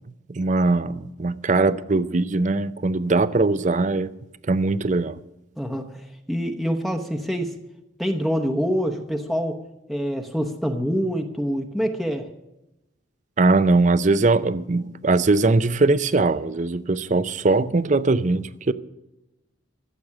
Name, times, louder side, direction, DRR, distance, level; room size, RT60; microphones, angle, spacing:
voice 1, 0.3-4.1 4.5-5.2 13.4-18.7, right 3 dB, 40° right, 0.5 m, -21 dB
voice 2, 5.6-7.5 8.0-12.3, equal, ahead, 0.9 m, -26 dB
14.5 x 7.8 x 8.5 m
head